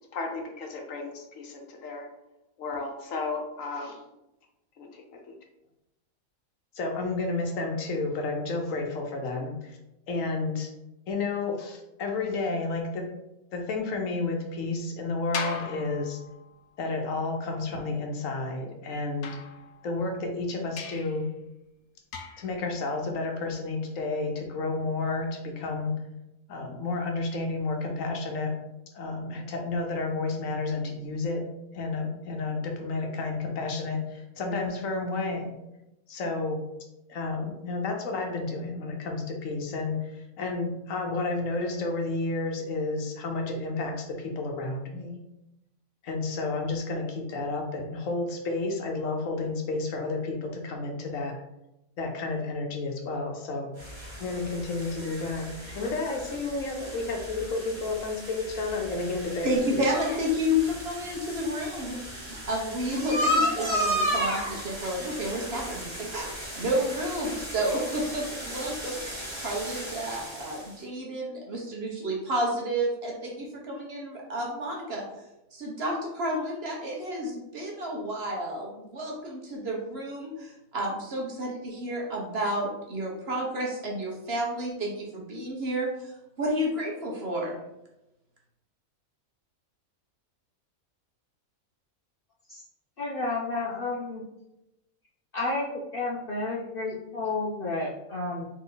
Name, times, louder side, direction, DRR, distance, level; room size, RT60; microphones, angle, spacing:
voice 1, 0.1-2.1 2.6-4.0 4.8-5.0 6.7-9.8 10.1-10.7 11.1-13.1 13.5-16.2 16.8-19.4 19.8-21.2 22.4-25.9 26.5-28.5 28.9-31.4 31.7-35.5 36.1-36.6 37.1-40.1 40.4-45.2 46.0-51.3 52.0-53.7 54.2-55.5 55.7-59.9, left 3 dB, 70° left, 2 dB, 1.1 m, -31 dB
sound 1, 15.3-16.7 19.2-20.1 20.8-21.2 22.1-22.6, left 6 dB, 90° left, 1.1 m, -38 dB
sound 2, 53.8-70.8, equal, 20° right, 1.0 m, -34 dB
voice 2, 59.4-66.3 66.6-75.0 75.5-87.6, equal, 50° right, -2 dB, 1.1 m, -31 dB
voice 3, 93.0-94.2 95.3-98.4, left 2 dB, 55° left, -4 dB, 0.7 m, -31 dB
4.0 x 3.2 x 3.8 m, 0.91 s
omnidirectional pair, 1.5 m